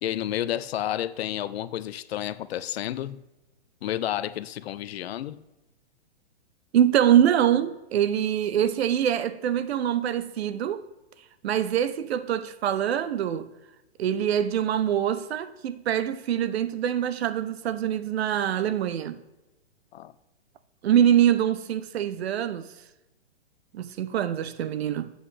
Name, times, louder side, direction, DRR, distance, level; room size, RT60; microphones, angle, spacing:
voice 1, 0.0-3.2 3.8-5.4 19.9-20.1, left 12 dB, 65° left, 0.5 m, -31 dB
voice 2, 6.7-10.8 11.4-13.5 14.0-19.2 20.8-22.7 23.7-25.1, right 10 dB, 65° right, 0.7 m, -24 dB
7.9 x 7.8 x 3.3 m
hypercardioid pair, 140°, 34 cm